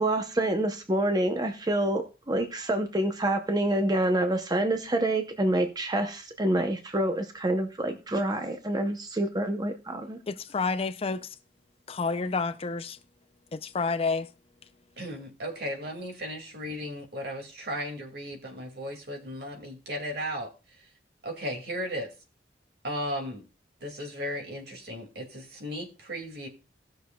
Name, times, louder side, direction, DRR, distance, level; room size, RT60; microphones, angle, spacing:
voice 1, 0.0-10.2, right 1 dB, 25° right, 0.7 m, -27 dB
voice 2, 10.3-11.4 11.9-13.0 13.5-14.3, left 4 dB, 35° left, 0.5 m, -29 dB
voice 3, 15.0-20.5 20.8-20.9 21.2-22.1 22.8-23.4 23.8-26.5, equal, 65° right, 2.2 m, -35 dB
17.5 x 6.5 x 2.3 m
head